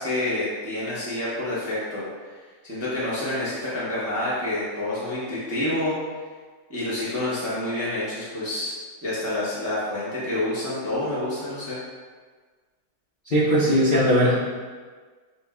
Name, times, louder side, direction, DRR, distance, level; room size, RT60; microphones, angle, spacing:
voice 1, 0.0-2.0 2.6-5.9 6.7-8.7 9.0-11.8, left 1 dB, 20° right, -9 dB, 0.4 m, -28 dB
voice 2, 13.3-14.4, equal, 50° left, -10 dB, 0.6 m, -19 dB
4.0 x 2.1 x 3.5 m, 1.5 s
omnidirectional pair, 1.7 m